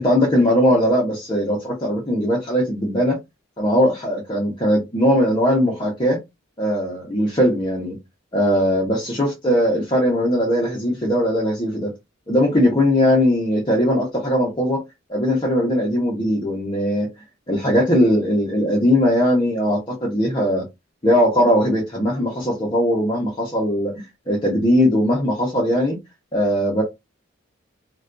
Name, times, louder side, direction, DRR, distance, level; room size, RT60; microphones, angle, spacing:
voice 1, 0.0-3.2 3.6-6.2 6.6-8.0 8.3-11.9 12.3-14.8 15.1-17.1 17.5-20.6 21.0-26.0 26.3-26.8, equal, 20° left, 0.6 m, -19 dB
2.4 x 2.2 x 2.4 m
head